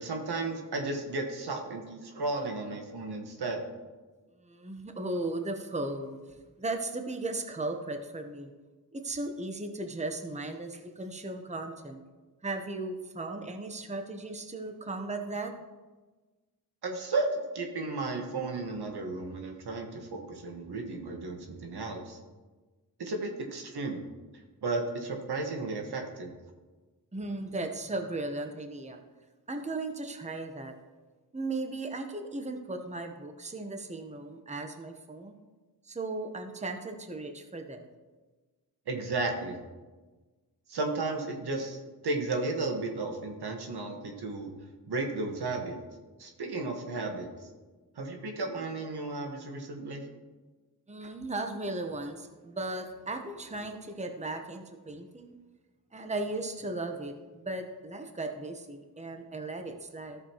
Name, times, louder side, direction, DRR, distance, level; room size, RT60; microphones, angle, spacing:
voice 1, 0.0-3.6 16.8-22.2 23.0-24.0 24.6-26.3 38.9-39.6 40.7-44.5 44.9-45.8 46.2-47.5 47.9-50.0, right 3 dB, 75° right, 3 dB, 1.5 m, -34 dB
voice 2, 4.4-8.5 8.9-12.0 12.4-15.5 27.1-29.0 29.5-30.7 31.3-35.4 35.8-37.8 50.9-55.3 55.9-60.2, right 2 dB, 15° right, 5 dB, 1.0 m, -36 dB
13.5 x 6.7 x 3.0 m, 1.3 s
cardioid pair, 55°, 39 cm